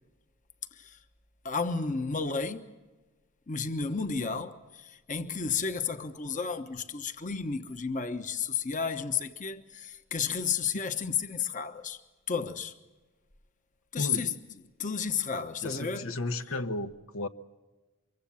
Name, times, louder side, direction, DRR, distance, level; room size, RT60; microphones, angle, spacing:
voice 1, 1.4-2.6 3.5-12.0 12.3-12.8 13.9-14.3 14.8-16.1, left 5 dB, 40° left, 1.1 m, -32 dB
voice 2, 14.0-14.3 15.6-17.3, left 2 dB, 85° left, 1.2 m, -34 dB
24.5 x 23.5 x 7.2 m
head